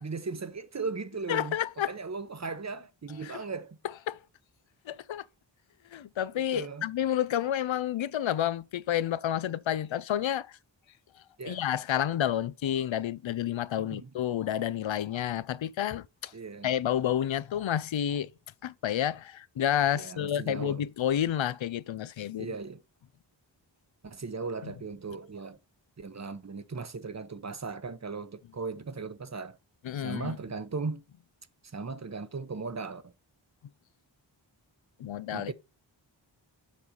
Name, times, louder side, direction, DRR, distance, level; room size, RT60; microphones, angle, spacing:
voice 1, 0.0-1.6 1.9-3.8 6.5-6.9 11.4-11.6 13.8-14.1 16.3-16.7 19.9-20.8 22.4-22.8 24.0-25.6 26.0-29.6 29.9-31.0 31.7-33.1 35.3-35.5, right 4 dB, 35° right, 0.8 m, -37 dB
voice 2, 1.3-1.9 3.2-3.4 4.1-4.2 4.9-5.2 5.9-10.5 11.4-16.3 16.6-18.3 18.6-22.5 29.8-30.4 35.0-35.5, left 10 dB, 80° left, 0.5 m, -30 dB
7.4 x 4.0 x 5.1 m
wide cardioid pair, 70°, 45 cm